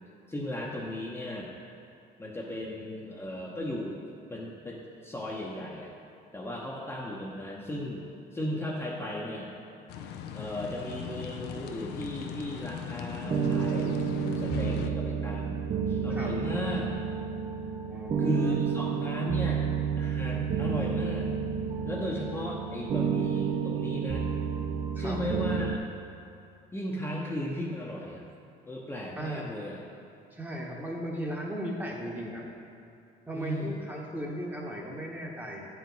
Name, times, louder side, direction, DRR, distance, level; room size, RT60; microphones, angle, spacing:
voice 1, 0.3-1.5 2.2-4.0 4.3-4.8 5.0-5.9 6.3-8.0 8.3-9.6 10.3-15.6 15.9-16.9 18.2-19.6 20.0-21.3 21.9-24.3 25.0-25.8 26.7-28.2 28.7-29.8 33.3-33.8, left 1 dB, 15° left, -4 dB, 0.8 m, -35 dB
sound 1, 9.9-14.9, left 8 dB, 80° left, 0.5 m, -39 dB
sound 2, 13.2-25.8, right 6 dB, 35° right, 0.4 m, -30 dB
voice 2, 17.9-18.5 25.0-25.2 29.2-29.5 30.3-32.5 33.3-35.7, equal, 10° right, -1 dB, 1.0 m, -36 dB
9.0 x 4.7 x 4.0 m, 2.7 s
cardioid pair, 110°, 17 cm